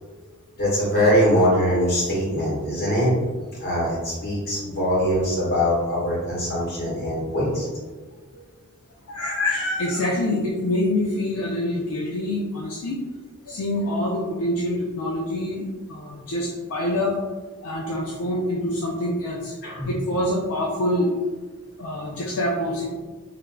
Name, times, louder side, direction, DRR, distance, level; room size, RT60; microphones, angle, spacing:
voice 1, 0.6-3.1 3.6-7.7 19.6-19.9, equal, 45° left, -7 dB, 1.3 m, -22 dB
voice 2, 9.1-13.0 13.5-17.2 17.6-19.5 19.9-21.1 21.8-22.8, left 1 dB, 65° left, -3 dB, 0.4 m, -26 dB
3.2 x 2.4 x 2.2 m, 1.3 s
head